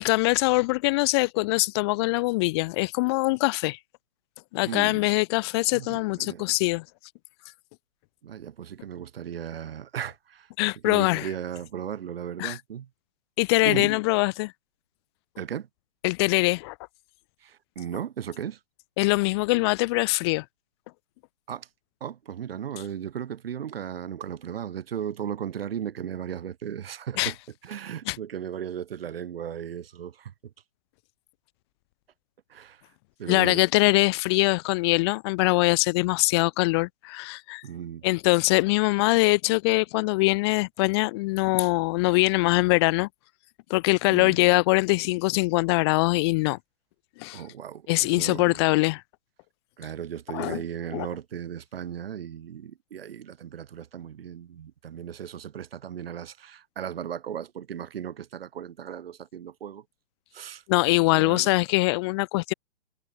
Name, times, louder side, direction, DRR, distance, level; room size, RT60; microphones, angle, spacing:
voice 1, 0.0-3.8 4.5-6.8 10.6-11.3 12.4-12.6 13.4-14.5 16.0-16.7 19.0-20.4 27.2-27.3 28.1-28.2 33.3-37.6 38.0-43.1 43.7-46.6 47.2-47.4 47.9-49.0 50.3-50.6 50.9-51.1 60.7-62.5, left 24 dB, 20° left, 1.7 m, -23 dB
voice 2, 4.7-5.0 5.7-6.4 8.2-10.5 10.8-12.9 13.6-13.9 15.4-15.7 17.4-18.6 21.5-21.7 22.0-27.4 27.6-30.5 32.5-32.8 33.2-33.6 37.6-38.1 44.1-44.4 47.3-48.6 49.8-59.8 60.3-60.6 61.1-61.5, right 9 dB, 50° right, 4.7 m, -36 dB
hypercardioid pair, 160°, 36 cm